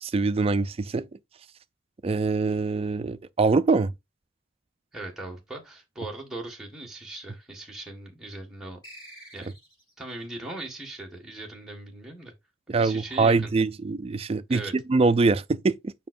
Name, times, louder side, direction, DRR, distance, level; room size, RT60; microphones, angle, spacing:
voice 1, 0.0-1.1 2.0-3.9 12.7-15.9, right 3 dB, 30° right, 0.3 m, -24 dB
voice 2, 4.9-8.8 9.3-9.6 10.0-12.3 12.7-13.5 14.5-14.7, right 2 dB, ahead, 1.5 m, -39 dB
sound 1, 8.8-10.0, right 1 dB, 20° left, 3.5 m, -48 dB
7.3 x 5.4 x 2.5 m
head